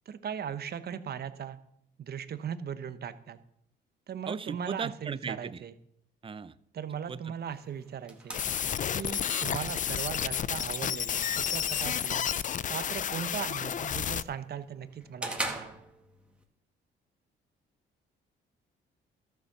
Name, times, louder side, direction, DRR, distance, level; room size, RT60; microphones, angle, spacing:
voice 1, 0.1-1.6 2.0-3.4 4.1-5.7 6.7-8.4 8.9-12.3 12.7-15.8, right 8 dB, 55° right, 12 dB, 1.0 m, -38 dB
voice 2, 4.3-5.6 6.2-6.5 7.1-7.3, right 6 dB, 25° right, 16 dB, 0.6 m, -37 dB
sound 1, 7.4-16.4, right 1 dB, 5° right, 1.9 m, -44 dB
sound 2, 8.3-14.2, left 9 dB, 40° left, 0.4 m, -31 dB
13.0 x 7.1 x 6.1 m, 0.73 s
cardioid pair, 90°, 20 cm